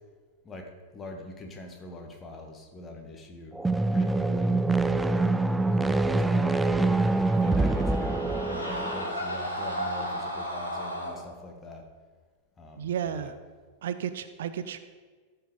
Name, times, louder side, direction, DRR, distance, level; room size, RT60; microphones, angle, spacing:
voice 1, 0.4-3.6 3.9-4.6 5.0-6.7 7.3-11.9 12.6-13.3, left 1 dB, 20° left, 3 dB, 1.7 m, -42 dB
sound 1, 3.6-9.2, right 2 dB, 10° right, 0.4 m, -25 dB
sound 2, 6.7-11.2, equal, 85° left, 2.9 m, -34 dB
voice 2, 12.7-13.4 13.8-14.8, right 9 dB, 60° right, 12 dB, 0.5 m, -32 dB
14.5 x 5.6 x 5.2 m, 1.5 s
figure-of-eight pair, 90°, 0 cm